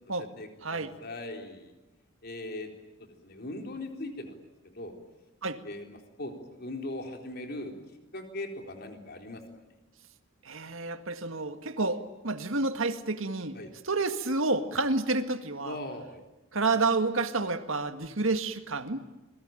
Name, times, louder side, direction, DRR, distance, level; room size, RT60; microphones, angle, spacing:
voice 1, 0.2-1.7 2.2-2.7 3.0-4.4 4.7-4.9 5.6-7.7 8.1-9.4 13.5-13.7 15.6-16.2, left 1 dB, 50° left, 4 dB, 4.0 m, -39 dB
voice 2, 10.5-13.6 13.8-15.8 16.5-19.0, right 3 dB, 65° right, 8 dB, 2.0 m, -29 dB
29.0 x 21.5 x 9.1 m, 1.0 s
head